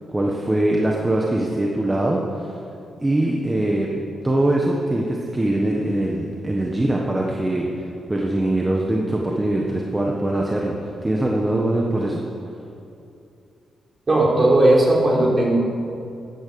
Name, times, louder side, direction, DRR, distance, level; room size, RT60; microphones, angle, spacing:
voice 1, 0.1-2.6 3.0-3.9 4.2-12.2, right 1 dB, 15° right, -1 dB, 1.4 m, -22 dB
voice 2, 14.1-15.5, right 1 dB, 35° right, -3 dB, 3.8 m, -16 dB
14.5 x 11.0 x 6.9 m, 2.6 s
cardioid pair, 110°, 0 cm